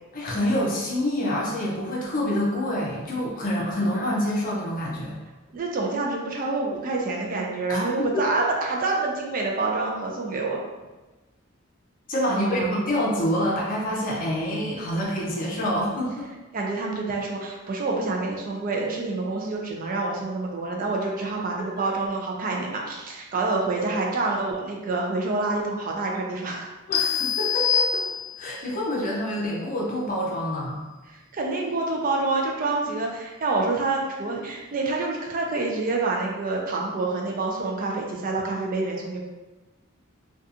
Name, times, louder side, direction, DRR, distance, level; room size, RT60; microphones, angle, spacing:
voice 1, 0.1-5.2 7.7-8.1 12.1-16.3 21.6-21.7 26.9-28.0 28.4-30.8, equal, 40° left, -3 dB, 0.6 m, -27 dB
voice 2, 5.5-10.6 12.3-12.7 16.5-26.7 31.1-39.2, right 3 dB, 40° right, -1 dB, 0.4 m, -27 dB
sound 1, 26.9-28.6, left 7 dB, 90° left, 0.3 m, -25 dB
2.7 x 2.3 x 2.4 m, 1.2 s
head